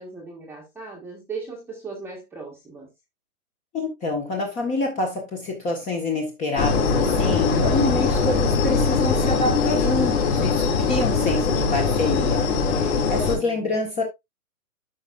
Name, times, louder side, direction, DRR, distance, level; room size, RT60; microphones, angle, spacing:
voice 1, 0.0-2.9 13.2-13.8, right 4 dB, 5° right, 1.4 m, -38 dB
voice 2, 3.7-14.0, left 2 dB, 15° left, 1.5 m, -27 dB
sound 1, 6.6-13.4, left 4 dB, 45° left, 3.8 m, -21 dB
13.0 x 5.4 x 2.5 m
hypercardioid pair, 155°, 44 cm